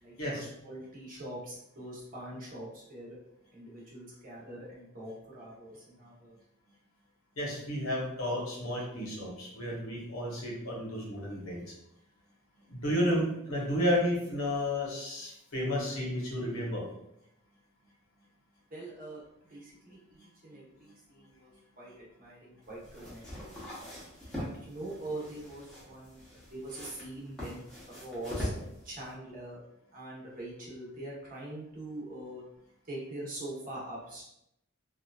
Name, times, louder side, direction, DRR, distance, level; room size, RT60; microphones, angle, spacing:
voice 1, 0.0-3.2 3.5-6.4 18.7-19.2 19.5-23.6 24.4-27.6 27.9-28.5 28.8-29.6 29.9-32.4 32.8-34.2, right 1 dB, 40° right, -5 dB, 0.9 m, -43 dB
voice 2, 7.4-11.7 12.7-16.9, equal, 80° left, -3 dB, 0.9 m, -32 dB
sound 1, 22.6-29.1, equal, 5° left, 0.8 m, -42 dB
2.8 x 2.4 x 2.3 m, 0.80 s
head